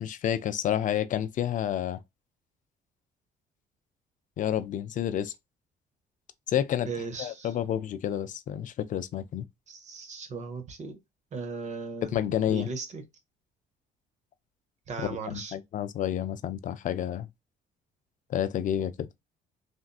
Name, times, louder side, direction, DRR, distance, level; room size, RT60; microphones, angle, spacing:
voice 1, 0.0-2.0 4.4-5.3 6.5-6.9 7.2-9.5 12.1-12.7 15.0-17.3 18.3-18.9, left 10 dB, 50° left, 0.4 m, -29 dB
voice 2, 6.8-7.5 9.7-10.9 11.3-12.1 12.5-13.0 14.9-15.5, right 4 dB, 45° right, 1.0 m, -37 dB
3.3 x 2.7 x 2.3 m
cardioid pair, 110°, 17 cm